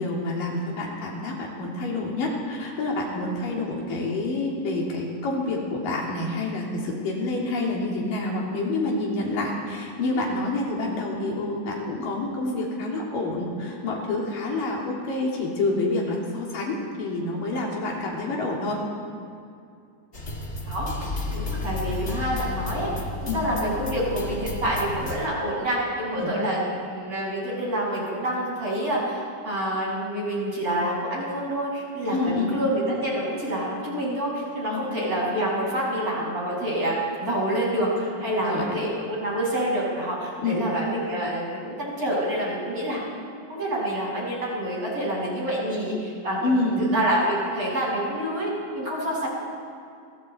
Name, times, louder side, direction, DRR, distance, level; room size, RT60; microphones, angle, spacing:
voice 1, 0.0-18.8 23.3-23.4 26.2-26.3 32.1-32.6 34.7-34.8 38.4-38.6 40.4-40.6 46.4-46.9, left 2 dB, 80° left, -2 dB, 4.9 m, -28 dB
sound 1, 20.1-25.3, left 2 dB, 25° left, 1.8 m, -32 dB
voice 2, 21.3-43.0 43.5-49.3, right 1 dB, 25° right, -5 dB, 7.8 m, -27 dB
29.5 x 22.5 x 4.6 m, 2.4 s
omnidirectional pair, 3.8 m